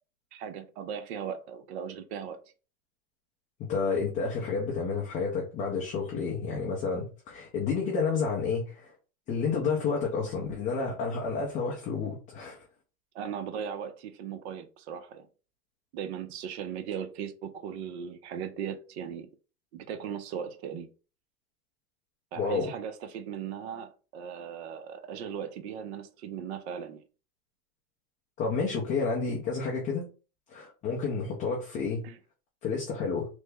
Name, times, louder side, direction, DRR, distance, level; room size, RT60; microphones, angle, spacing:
voice 1, 0.3-2.4 13.1-15.3 15.9-19.3 19.7-20.9 22.3-27.0 32.0-32.2, right 8 dB, 45° right, 0.6 m, -38 dB
voice 2, 3.6-8.9 9.3-12.7 22.4-22.7 28.4-30.1 30.5-32.0 32.6-33.3, left 5 dB, 15° left, 0.4 m, -30 dB
3.3 x 2.0 x 3.3 m
hypercardioid pair, 120°, 47 cm